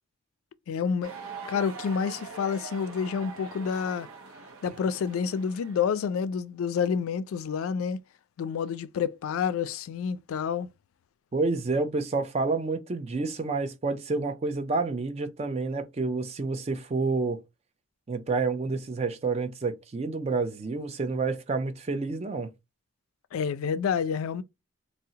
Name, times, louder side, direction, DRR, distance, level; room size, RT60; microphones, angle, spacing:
voice 1, 0.7-1.1 1.5-4.1 4.6-8.0 8.4-10.7 23.3-24.4, left 6 dB, 80° left, 0.3 m, -29 dB
sound 1, 1.0-5.9, right 4 dB, 85° right, 0.6 m, -43 dB
voice 2, 11.3-17.4 18.1-22.5, right 3 dB, 30° right, 0.4 m, -29 dB
2.7 x 2.0 x 3.6 m
head